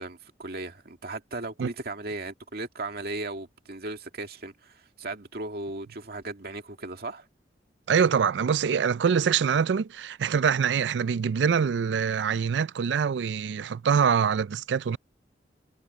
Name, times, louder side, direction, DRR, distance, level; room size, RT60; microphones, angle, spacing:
voice 1, 0.0-7.3, right 2 dB, 60° right, 2.3 m, -36 dB
voice 2, 7.9-15.0, right 7 dB, 75° right, 0.4 m, -24 dB
head